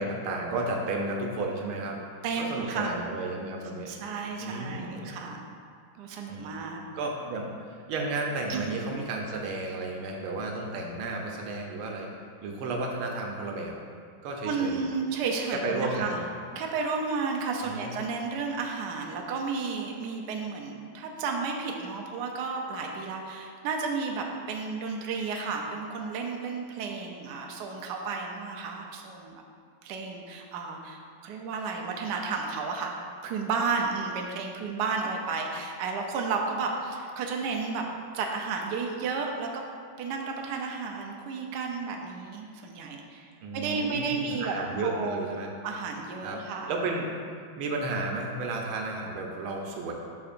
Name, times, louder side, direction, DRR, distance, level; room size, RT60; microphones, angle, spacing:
voice 1, 0.0-2.0 2.4-3.9 4.4-5.1 6.3-6.6 6.9-12.1 12.4-13.8 14.2-14.8 15.5-16.2 17.6-17.9 43.4-45.5 46.2-46.4 46.7-47.1 47.6-49.9, right 2 dB, 85° right, 1 dB, 1.6 m, -32 dB
voice 2, 2.2-2.9 3.9-5.4 6.0-6.8 8.5-8.7 14.4-16.2 16.6-29.4 29.8-32.9 33.2-37.9 38.1-39.7 40.0-43.3 43.5-44.5 44.8-45.3 45.6-46.7, right 4 dB, 70° right, 1 dB, 1.1 m, -32 dB
11.5 x 3.8 x 2.5 m, 2.2 s
omnidirectional pair, 2.3 m